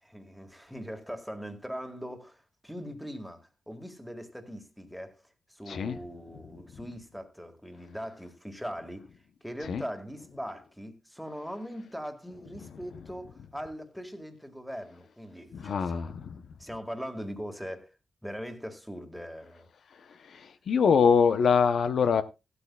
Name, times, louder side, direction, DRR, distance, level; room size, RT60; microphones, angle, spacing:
voice 1, 0.0-5.2 5.5-9.0 9.4-16.1 16.6-17.9 18.2-19.7, equal, ahead, 1.8 m, -40 dB
voice 2, 5.7-6.0 9.7-9.8 15.5-16.3 20.3-22.2, left 6 dB, 70° left, 0.7 m, -24 dB
16.0 x 12.5 x 2.3 m
wide cardioid pair, 120°, 0 cm